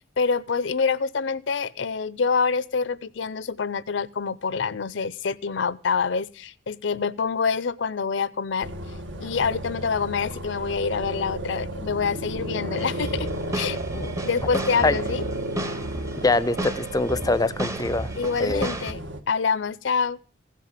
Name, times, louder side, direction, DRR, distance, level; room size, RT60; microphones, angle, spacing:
voice 1, 0.2-8.7 9.2-15.2 18.1-19.0 19.3-20.2, left 5 dB, 70° left, 0.6 m, -26 dB
sound 1, 8.6-19.2, right 1 dB, 70° right, 1.4 m, -33 dB
sound 2, 12.8-18.9, right 1 dB, 15° right, 0.8 m, -33 dB
voice 2, 16.2-18.1 18.4-18.7, left 2 dB, 20° left, 0.6 m, -23 dB
16.5 x 7.6 x 7.3 m
head